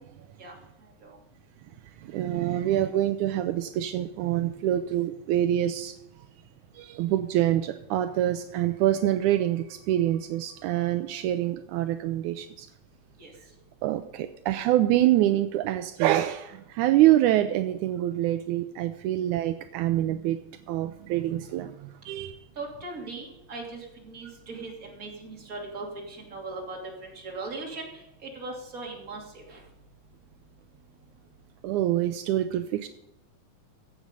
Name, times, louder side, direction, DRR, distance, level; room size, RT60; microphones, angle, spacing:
voice 1, 2.0-5.9 6.8-12.7 13.8-20.4 20.7-22.3 31.6-32.9, right 13 dB, 85° right, 9 dB, 1.7 m, -25 dB
voice 2, 22.6-27.9 28.2-29.6, right 3 dB, 25° right, -1 dB, 2.8 m, -39 dB
15.5 x 8.4 x 5.3 m, 0.90 s
omnidirectional pair, 4.1 m